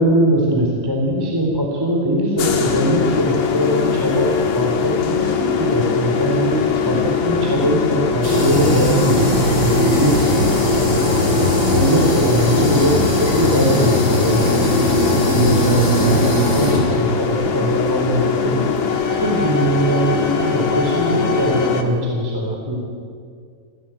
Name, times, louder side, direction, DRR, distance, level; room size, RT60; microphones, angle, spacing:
voice 1, 0.0-10.3 11.7-18.7 19.0-22.7, equal, 5° right, -1 dB, 3.1 m, -21 dB
sound 1, 2.4-21.8, left 6 dB, 50° left, 2.5 m, -21 dB
sound 2, 8.2-21.6, equal, 30° left, 5.2 m, -21 dB
28.0 x 17.0 x 9.2 m, 2.2 s
omnidirectional pair, 5.1 m